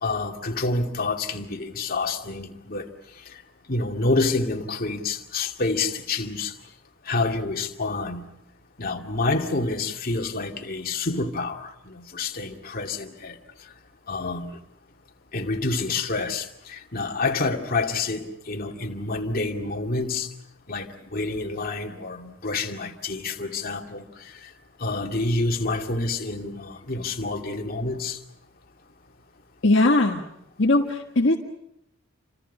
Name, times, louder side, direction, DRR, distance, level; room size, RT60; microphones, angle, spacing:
voice 1, 0.0-2.9 3.3-3.4 3.7-6.5 7.0-8.3 8.8-13.4 14.1-14.6 15.3-20.3 20.7-24.5 24.8-28.2, left 3 dB, 50° left, 2.3 m, -28 dB
voice 2, 29.6-30.2 30.6-31.4, left 2 dB, 65° left, 1.6 m, -19 dB
29.0 x 26.5 x 5.6 m
head